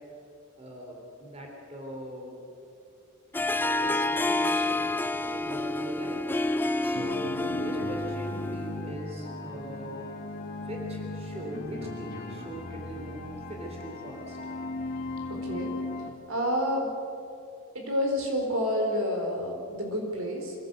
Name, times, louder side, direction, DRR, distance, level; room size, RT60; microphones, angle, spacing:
voice 1, 0.6-2.4 3.8-4.9 5.3-6.3 6.8-10.1 10.4-13.2 13.5-14.4, equal, 30° right, 0 dB, 3.6 m, -41 dB
Harp, 3.3-8.8, left 2 dB, 10° left, 0.4 m, -29 dB
sound 1, 6.9-16.1, left 2 dB, 40° left, 2.5 m, -37 dB
voice 2, 15.3-15.7 16.3-16.9 17.7-20.5, equal, 65° right, 2 dB, 4.4 m, -29 dB
25.5 x 17.0 x 8.0 m, 2.6 s
head